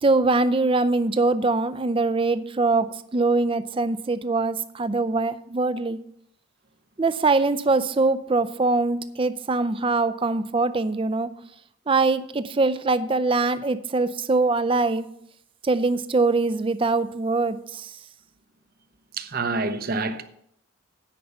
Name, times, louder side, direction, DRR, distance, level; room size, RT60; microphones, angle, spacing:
voice 1, 0.0-6.0 7.0-11.3 11.9-15.1 15.6-18.0, right 3 dB, 25° right, 0.4 m, -23 dB
voice 2, 19.2-20.2, right 3 dB, 45° right, 0.8 m, -27 dB
10.0 x 5.4 x 6.9 m
head